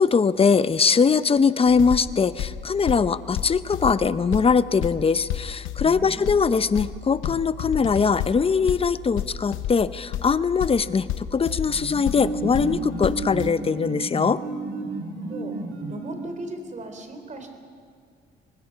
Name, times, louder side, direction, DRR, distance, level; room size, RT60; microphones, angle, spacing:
voice 1, 0.0-14.4, left 5 dB, 30° left, 15 dB, 0.7 m, -21 dB
sound 1, 1.7-13.5, left 10 dB, 90° left, 0.8 m, -33 dB
voice 2, 5.8-6.2 14.8-15.5 15.9-17.6, right 2 dB, 40° right, 6 dB, 3.4 m, -37 dB
sound 2, 11.6-16.5, right 2 dB, 75° right, 3.2 m, -32 dB
23.5 x 20.0 x 5.8 m, 2.3 s
cardioid pair, 90°, 20 cm